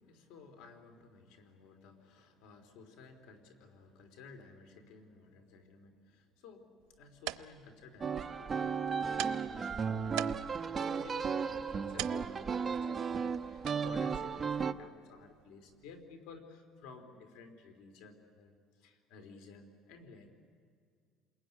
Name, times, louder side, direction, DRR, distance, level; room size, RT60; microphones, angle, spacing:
voice 1, 0.0-20.3, left 4 dB, 85° left, 6 dB, 3.7 m, -55 dB
sound 1, 6.8-16.1, right 17 dB, 90° right, 0.7 m, -47 dB
sound 2, 8.0-14.7, right 6 dB, 25° right, 0.9 m, -34 dB
28.5 x 21.5 x 9.7 m, 2.1 s
cardioid pair, 145°, 0 cm